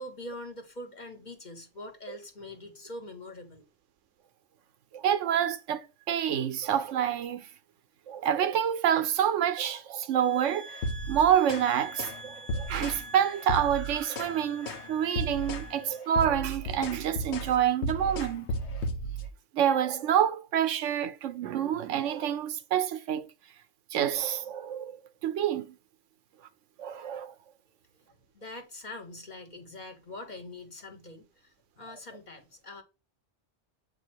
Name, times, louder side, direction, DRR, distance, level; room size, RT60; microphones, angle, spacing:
voice 1, 0.0-3.6 28.0-32.8, left 1 dB, 40° left, 1.4 m, -43 dB
voice 2, 4.9-7.5 8.1-10.8 11.1-18.5 19.5-23.3 23.9-24.9 25.2-25.7 26.8-27.3, right 9 dB, 90° right, 1.0 m, -27 dB
sound 1, 10.2-16.0, right 2 dB, 5° left, 1.4 m, -47 dB
sound 2, 10.7-11.7 12.0-12.2 12.5-13.0 13.4-14.4 14.7-14.9 15.2-15.7 16.0-19.3, right 1 dB, 70° left, 1.1 m, -34 dB
7.7 x 2.8 x 4.4 m
omnidirectional pair, 1.2 m